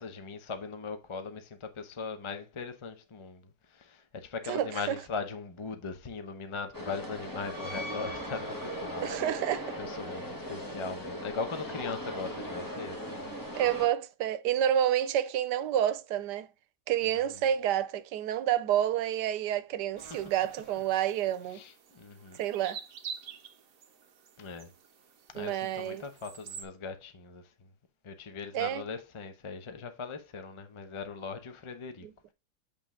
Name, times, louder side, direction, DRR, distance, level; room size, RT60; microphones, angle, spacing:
voice 1, 0.0-9.0 9.8-13.3 17.0-17.4 20.0-20.3 21.5-22.4 24.4-24.7 25.3-27.7 28.0-32.1, left 5 dB, 30° left, 0.6 m, -40 dB
voice 2, 4.5-5.0 9.0-9.7 13.5-16.5 16.9-21.6 22.4-22.8 25.3-26.0 28.5-28.8 32.0-32.1, right 11 dB, 90° right, 1.2 m, -29 dB
sound 1, 6.7-13.9, equal, 15° left, 1.3 m, -38 dB
sound 2, 20.0-26.6, right 7 dB, 60° right, 1.2 m, -47 dB
8.1 x 3.4 x 3.7 m
omnidirectional pair, 1.8 m